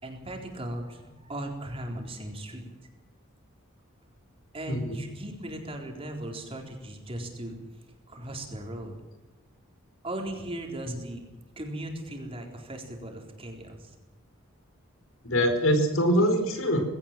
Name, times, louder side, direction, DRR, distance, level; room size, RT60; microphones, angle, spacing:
voice 1, 0.0-2.7 4.5-7.6 8.1-9.0 10.0-11.2 11.6-14.0, right 1 dB, 25° right, 2 dB, 4.0 m, -37 dB
voice 2, 4.7-5.1 10.9-11.0 15.2-16.8, equal, 80° left, 7 dB, 4.7 m, -24 dB
20.0 x 17.5 x 7.6 m, 1.1 s
head